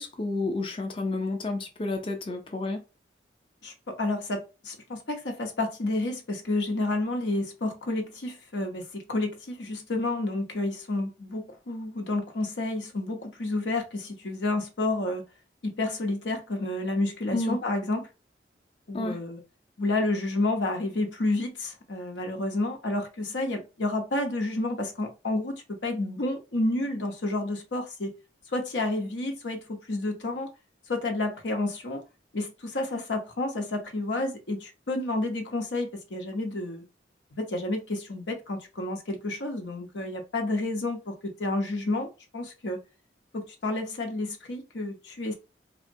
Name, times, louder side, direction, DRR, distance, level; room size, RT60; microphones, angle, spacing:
voice 1, 0.0-2.8 17.3-17.6 18.9-19.2, left 2 dB, 30° left, 0.5 m, -30 dB
voice 2, 3.6-15.2 15.6-18.1 18.9-19.4 19.8-28.1 28.5-30.5 30.9-32.0 32.3-36.8 37.3-42.8 43.3-45.3, left 2 dB, 90° left, 0.7 m, -30 dB
3.6 x 2.1 x 2.6 m
head